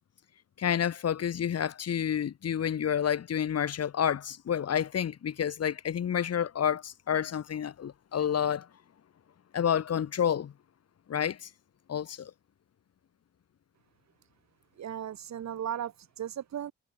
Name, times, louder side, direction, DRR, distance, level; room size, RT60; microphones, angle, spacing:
voice 1, 0.6-8.7 9.5-10.5 11.1-11.5 11.9-12.3, left 8 dB, 55° left, 3.3 m, -29 dB
voice 2, 14.8-16.7, right 10 dB, 65° right, 5.2 m, -36 dB
cardioid pair, 90°, 30 cm